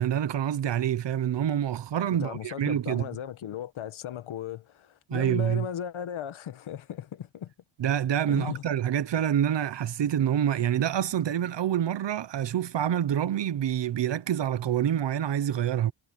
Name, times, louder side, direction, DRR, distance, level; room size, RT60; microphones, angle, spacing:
voice 1, 0.0-3.1 5.1-5.7 7.8-15.9, right 10 dB, 60° right, 1.1 m, -27 dB
voice 2, 2.2-7.5 8.3-8.6, left 9 dB, 75° left, 1.8 m, -36 dB
wide cardioid pair, 125°, 49 cm